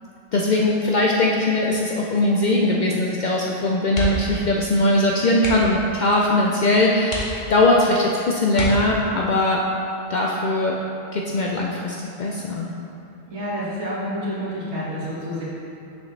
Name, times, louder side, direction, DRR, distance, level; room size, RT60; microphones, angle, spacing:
voice 1, 0.3-9.6 10.1-10.8 11.1-12.7, left 1 dB, 80° left, -2 dB, 0.4 m, -20 dB
sound 1, 3.9-4.4 4.7-4.9 5.3-5.8 6.5-6.6 7.0-7.8 8.5-9.3 10.9-11.2 11.5-11.6, left 3 dB, 50° left, 1.2 m, -30 dB
voice 2, 13.3-15.4, equal, 60° right, -8 dB, 1.9 m, -28 dB
6.4 x 6.4 x 3.2 m, 2.6 s
omnidirectional pair, 1.4 m